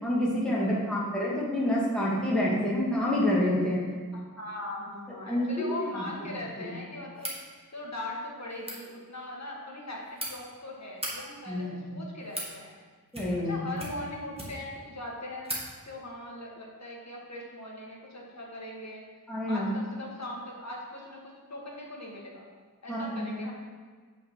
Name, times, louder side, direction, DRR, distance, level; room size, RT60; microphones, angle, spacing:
voice 1, 0.0-3.8 5.3-6.1 6.6-6.7 11.5-12.0 13.1-13.6 19.3-19.7 22.9-23.4, left 1 dB, ahead, -7 dB, 2.3 m, -28 dB
voice 2, 0.6-0.9 4.1-7.3 7.7-12.8 13.4-15.5 15.9-19.0 19.4-22.5 22.8-23.5, left 1 dB, 50° left, -2 dB, 1.8 m, -40 dB
sound 1, 7.1-7.4 8.5-8.8 9.8-10.3 10.9-11.1 11.9-12.5 13.1-13.5 13.8-14.7 15.1-15.2 15.4-15.6, right 1 dB, 15° right, 1.9 m, -37 dB
8.2 x 5.7 x 4.6 m, 1.5 s
wide cardioid pair, 85°, 36 cm